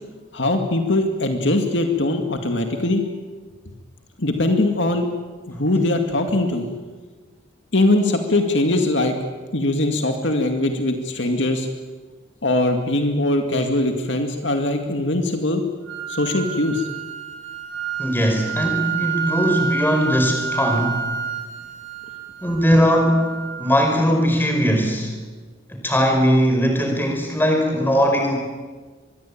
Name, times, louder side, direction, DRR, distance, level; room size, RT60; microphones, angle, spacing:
voice 1, 0.3-3.0 4.2-5.1 5.5-6.7 7.7-9.1 9.5-11.7 12.4-15.6 16.1-16.9, left 2 dB, 65° left, 4 dB, 2.3 m, -21 dB
sound 1, 15.9-23.9, right 6 dB, 70° right, 3.6 m, -29 dB
voice 2, 18.0-21.2 22.4-25.1 25.7-28.3, equal, 10° left, 3 dB, 5.1 m, -19 dB
24.0 x 22.0 x 8.7 m, 1.4 s
head